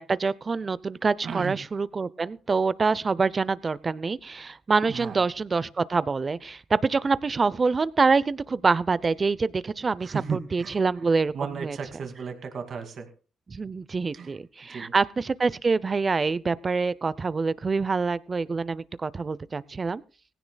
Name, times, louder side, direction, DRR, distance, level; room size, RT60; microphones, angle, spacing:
voice 1, 0.0-11.3 11.6-11.8 13.5-20.0, right 4 dB, 30° right, 0.6 m, -26 dB
voice 2, 1.2-1.6 4.9-5.2 10.0-10.8 11.3-13.1 14.1-14.3 14.6-14.9, right 6 dB, 55° right, 2.4 m, -35 dB
18.5 x 16.5 x 2.3 m
cardioid pair, 90°, 0 cm